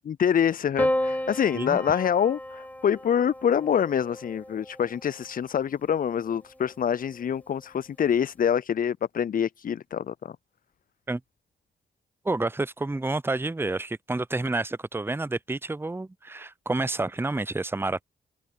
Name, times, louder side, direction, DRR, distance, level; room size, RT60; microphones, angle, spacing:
voice 1, 0.1-10.3, left 8 dB, 40° left, 0.4 m, -26 dB
Piano, 0.8-5.2 6.4-7.1, left 1 dB, 5° left, 6.3 m, -32 dB
voice 2, 12.2-18.0, right 2 dB, 10° right, 0.6 m, -29 dB
open air
hypercardioid pair, 40°, 21 cm